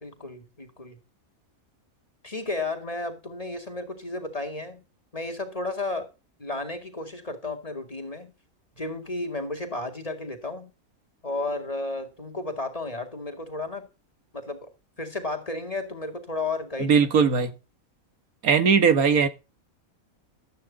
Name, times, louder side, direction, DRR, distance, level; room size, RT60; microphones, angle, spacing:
voice 1, 0.0-1.0 2.2-4.8 5.1-6.1 6.4-8.3 8.8-10.7 11.2-13.9 14.3-14.7 15.0-17.0, left 2 dB, 25° left, 2.3 m, -33 dB
voice 2, 16.8-17.5 18.4-19.3, right 6 dB, 80° right, 1.9 m, -19 dB
13.0 x 8.7 x 4.0 m
omnidirectional pair, 1.5 m